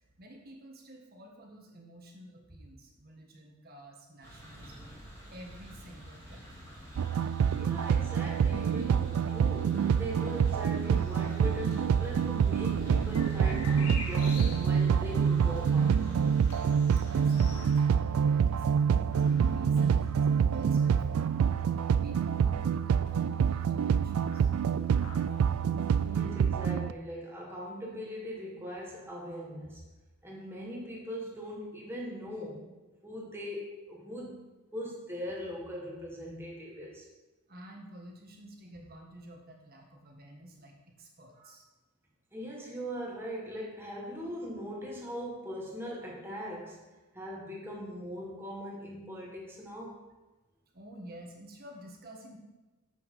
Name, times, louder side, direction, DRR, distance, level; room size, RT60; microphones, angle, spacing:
voice 1, 0.2-4.9 5.3-6.6 17.1-24.5 37.5-41.6 50.7-52.4, right 1 dB, 45° right, 1 dB, 1.5 m, -50 dB
sound 1, 4.2-17.6, equal, 15° left, 2.2 m, -49 dB
sound 2, 7.0-26.9, right 7 dB, 80° right, 0.3 m, -27 dB
voice 2, 7.6-16.1 26.0-29.9 30.2-32.7 33.0-34.4 34.7-37.1 42.3-46.9 47.1-50.0, equal, 10° right, -3 dB, 1.7 m, -40 dB
sound 3, 7.9-26.2, left 3 dB, 90° left, 1.3 m, -50 dB
7.7 x 6.0 x 5.5 m, 1.1 s
head